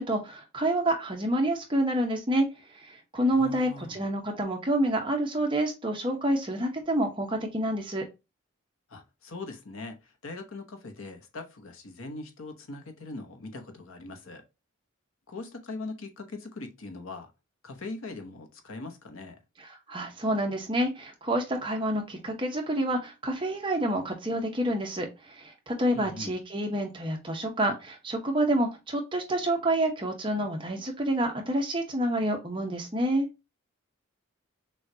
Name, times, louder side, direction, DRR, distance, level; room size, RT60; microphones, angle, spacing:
voice 1, 0.0-2.5 2.8-8.1 19.9-33.3, right 1 dB, 25° right, 0.8 m, -28 dB
voice 2, 3.3-4.0 8.9-14.4 15.3-17.3 17.6-19.4 25.9-26.4, left 3 dB, 75° left, 0.9 m, -41 dB
6.2 x 2.3 x 2.7 m
head